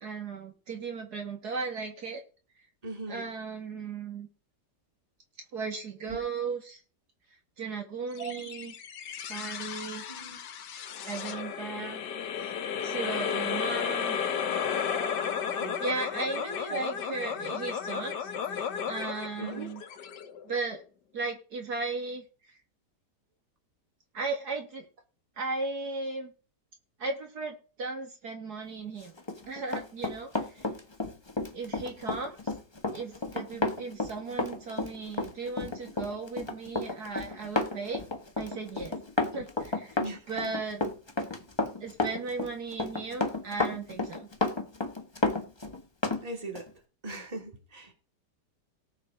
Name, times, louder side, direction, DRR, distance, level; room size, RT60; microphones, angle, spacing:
voice 1, 0.0-2.2 3.1-4.3 5.5-6.8 7.6-8.7 9.3-10.0 11.0-12.0 12.3-12.5 12.8-14.2 15.8-19.8 20.5-20.8 21.1-22.2 24.1-24.9 25.4-26.3 27.0-29.1 29.5-30.7 31.5-32.5 32.9-38.0 38.4-39.0 39.3-40.0 40.3-40.8 41.8-44.3, right 4 dB, 65° right, 2.4 m, -36 dB
voice 2, 2.8-3.3 6.1-6.2 8.2-8.7 10.1-10.4 14.9-15.1 15.5-15.8 16.7-17.1 19.4-19.7 40.0-40.5 46.2-46.7 47.0-47.9, right 3 dB, 20° right, 2.4 m, -40 dB
sound 1, 8.2-20.8, left 7 dB, 75° left, 1.6 m, -34 dB
Run, 29.2-46.2 46.6-46.7, left 2 dB, 20° left, 1.0 m, -31 dB
18.5 x 6.9 x 3.8 m
omnidirectional pair, 1.8 m